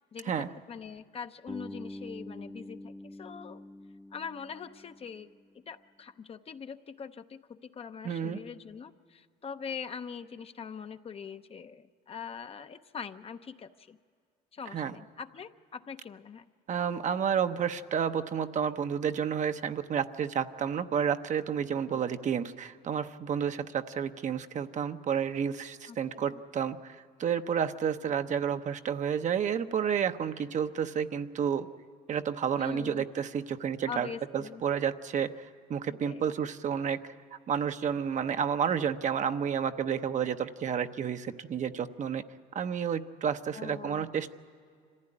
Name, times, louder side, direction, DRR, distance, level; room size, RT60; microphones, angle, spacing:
voice 1, 0.1-3.6 4.1-5.3 5.5-14.0 14.5-16.5 21.9-22.0 25.9-26.4 32.6-33.0 33.9-34.6 36.0-36.3 38.2-38.3 43.5-44.1, left 6 dB, 35° left, 10 dB, 0.7 m, -43 dB
Bass guitar, 1.5-5.6, left 1 dB, ahead, 0.7 m, -45 dB
voice 2, 8.0-8.4 14.7-14.9 16.7-31.7 32.1-34.1 34.3-35.3 35.7-37.1 37.5-42.2 42.5-44.3, right 7 dB, 45° right, 9 dB, 0.8 m, -30 dB
25.5 x 15.0 x 9.8 m, 2.2 s
cardioid pair, 110°, 17 cm